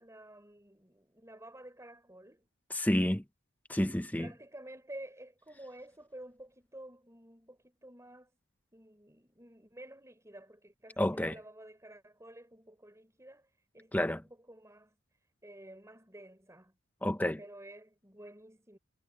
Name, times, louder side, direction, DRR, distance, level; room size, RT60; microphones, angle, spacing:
voice 1, 0.0-2.5 4.2-8.3 8.7-14.9 15.4-16.7 17.4-18.8, right 1 dB, 15° right, 5.9 m, -51 dB
voice 2, 2.7-3.2 3.7-4.3 11.0-11.4 13.9-14.2 17.0-17.4, left 1 dB, 5° left, 0.8 m, -29 dB
head